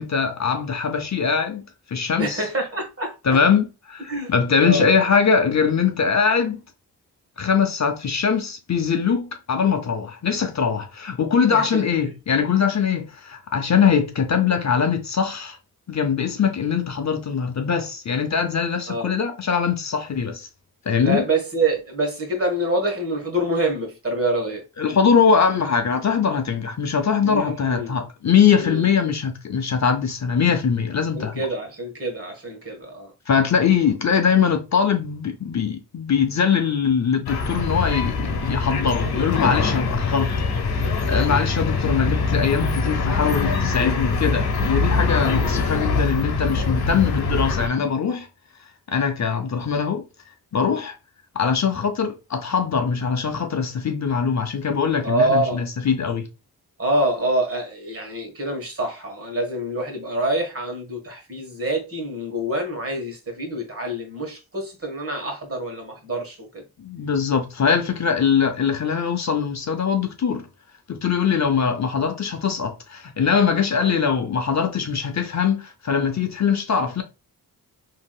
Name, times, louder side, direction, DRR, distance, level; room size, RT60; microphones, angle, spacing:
voice 1, 0.0-1.6 1.9-2.4 3.2-6.6 7.4-15.6 15.9-20.5 20.9-21.3 24.8-31.5 33.3-40.3 40.7-48.3 48.9-50.0 50.5-50.9 51.3-56.3 66.8-70.5 70.9-77.0, left 6 dB, 45° left, 0.6 m, -22 dB
voice 2, 2.2-3.1 4.1-4.3 4.6-4.9 11.5-11.8 18.9-19.1 21.0-24.6 27.2-27.9 28.6-28.9 31.1-33.1 45.4-45.7 55.0-55.7 56.8-66.6, right 1 dB, 35° right, 1.4 m, -26 dB
sound 1, 37.3-47.7, left 4 dB, 75° left, 0.9 m, -23 dB
3.4 x 2.8 x 2.2 m
cardioid pair, 60°, 38 cm